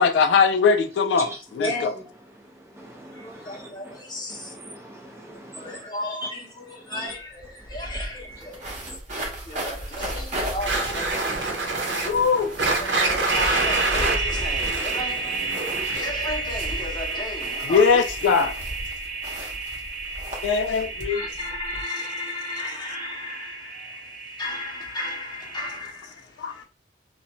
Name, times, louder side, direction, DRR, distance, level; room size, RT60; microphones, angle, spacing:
voice 1, 0.0-1.9 5.7-5.8 11.9-12.6 17.6-18.5 20.4-21.2 26.4-26.6, left 5 dB, 75° left, 0.3 m, -21 dB
voice 2, 1.6-2.1 3.1-4.5 5.5-8.6 9.5-11.4 12.8-18.0 21.1-24.0 24.4-26.1 26.5-26.6, left 1 dB, 25° left, 0.8 m, -34 dB
voice 3, 2.7-4.0 4.3-5.8 6.2-6.3 6.9-7.1 7.9-8.1 8.9-9.0, equal, 15° right, 0.6 m, -40 dB
sound 1, 7.1-7.2 7.4-21.8, right 1 dB, 45° right, 0.9 m, -36 dB
sound 2, 10.6-16.3, right 3 dB, 85° right, 0.7 m, -26 dB
sound 3, 13.3-25.8, right 4 dB, 70° right, 0.3 m, -32 dB
2.5 x 2.2 x 2.9 m
head